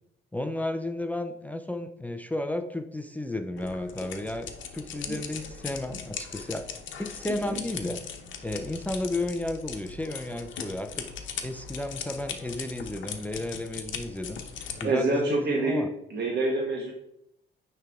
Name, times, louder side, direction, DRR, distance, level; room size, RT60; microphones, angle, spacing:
voice 1, 0.3-6.6 7.0-8.0 8.4-11.1 11.4-14.4 14.8-15.9, left 1 dB, 10° left, 6 dB, 0.5 m, -33 dB
sound 1, 3.6-14.8, left 7 dB, 75° left, 0.9 m, -39 dB
voice 2, 7.3-7.6 14.8-16.9, right 2 dB, 55° right, 0 dB, 1.2 m, -27 dB
9.4 x 3.4 x 3.6 m, 0.80 s
cardioid pair, 90°, 20 cm